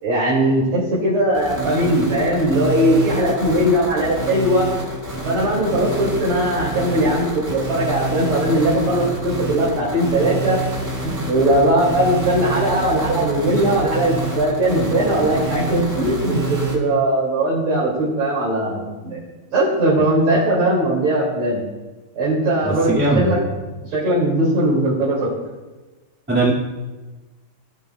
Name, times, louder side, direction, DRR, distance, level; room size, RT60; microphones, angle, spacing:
voice 1, 0.0-4.7 5.2-10.6 11.0-19.2 19.5-21.6 22.1-23.4 23.8-25.3, right 1 dB, 80° right, -8 dB, 3.4 m, -19 dB
sound 1, 1.3-16.8, right 2 dB, 25° right, 3.6 m, -28 dB
voice 2, 22.9-23.4 26.3-26.5, right 2 dB, 5° right, -5 dB, 2.0 m, -18 dB
18.0 x 9.2 x 2.3 m, 1.2 s
omnidirectional pair, 2.3 m